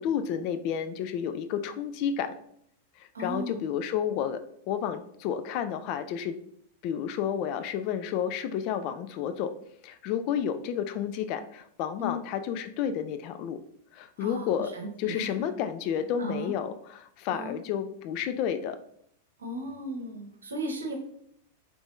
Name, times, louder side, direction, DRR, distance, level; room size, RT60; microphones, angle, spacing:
voice 1, 0.0-2.3 3.0-4.4 4.7-6.4 6.8-9.5 9.8-13.6 13.9-14.7 15.0-18.8, left 8 dB, 45° left, 10 dB, 0.3 m, -31 dB
voice 2, 3.1-3.7 12.0-12.2 14.2-15.3 16.2-16.5 17.3-17.6 19.4-20.9, right 1 dB, 75° right, 2 dB, 0.8 m, -36 dB
3.3 x 3.3 x 2.5 m, 0.69 s
figure-of-eight pair, 95°, 0 cm